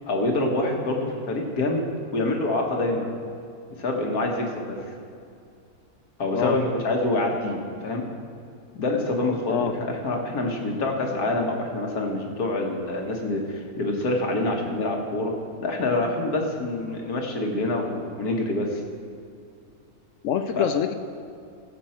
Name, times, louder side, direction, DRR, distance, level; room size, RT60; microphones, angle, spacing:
voice 1, 0.1-1.8 2.1-3.1 3.8-4.8 6.2-7.6 7.8-8.0 8.8-15.3 15.6-18.8 20.6-20.7, left 2 dB, 85° left, 1 dB, 1.9 m, -26 dB
voice 2, 20.2-20.9, left 8 dB, 70° left, 8 dB, 0.8 m, -25 dB
15.5 x 7.6 x 4.4 m, 2.4 s
omnidirectional pair, 1.5 m